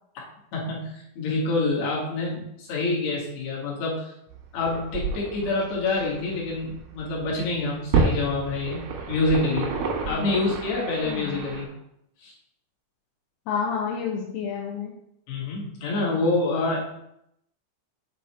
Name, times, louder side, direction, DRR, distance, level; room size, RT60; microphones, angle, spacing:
voice 1, 0.5-4.1 4.5-9.7 10.1-11.7 12.2-12.3 15.3-16.8, left 2 dB, 60° left, -4 dB, 3.5 m, -27 dB
sound 1, 4.3-11.6, right 4 dB, 70° right, 2.1 m, -30 dB
voice 2, 10.1-10.4 11.1-11.4 13.5-14.9, left 6 dB, 85° left, -1 dB, 3.1 m, -30 dB
7.7 x 4.0 x 4.4 m, 0.78 s
omnidirectional pair, 5.8 m